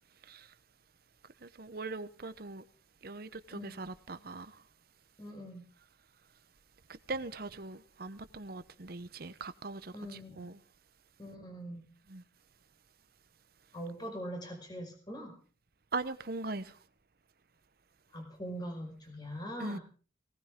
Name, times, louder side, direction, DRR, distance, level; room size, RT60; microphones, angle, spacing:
voice 1, 1.4-2.6 3.0-4.6 7.1-10.6 12.1-12.2 15.9-16.8 19.6-19.8, right 3 dB, 55° right, 0.9 m, -40 dB
voice 2, 5.2-5.7 9.9-10.5 11.2-11.8 13.7-15.4 18.1-19.8, equal, 25° left, 5.2 m, -42 dB
18.5 x 18.5 x 3.7 m
head